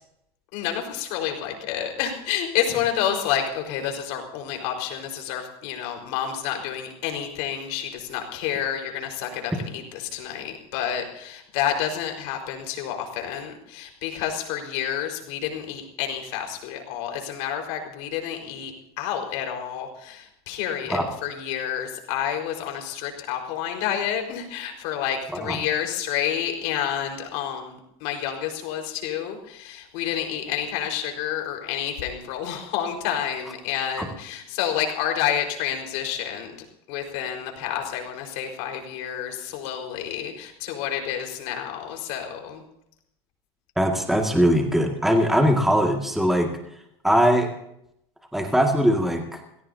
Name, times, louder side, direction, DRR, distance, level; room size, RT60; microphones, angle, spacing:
voice 1, 0.5-36.6 36.9-42.6, left 9 dB, 65° left, 3 dB, 4.8 m, -29 dB
voice 2, 43.8-46.5 47.0-47.5 48.3-49.2, equal, ahead, 2 dB, 2.1 m, -20 dB
29.0 x 17.0 x 2.8 m, 0.76 s
supercardioid pair, 135°, 14 cm